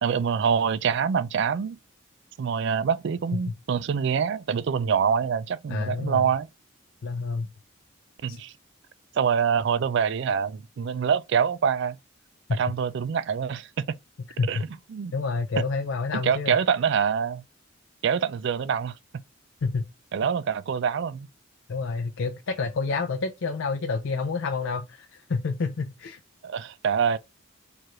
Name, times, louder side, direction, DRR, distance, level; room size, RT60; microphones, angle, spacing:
voice 1, 0.0-1.8 2.4-6.5 8.2-8.5 9.2-12.0 12.5-14.0 14.5-14.6 14.9-15.1 16.1-17.4 18.0-18.9 20.1-21.3 26.4-27.2, right 7 dB, 60° right, 0.3 m, -25 dB
voice 2, 5.7-6.2 7.0-7.5 8.3-8.4 12.5-12.6 14.4-14.6 15.1-16.6 19.6-19.9 21.7-26.2, left 4 dB, 70° left, 0.5 m, -28 dB
4.6 x 2.5 x 3.0 m
head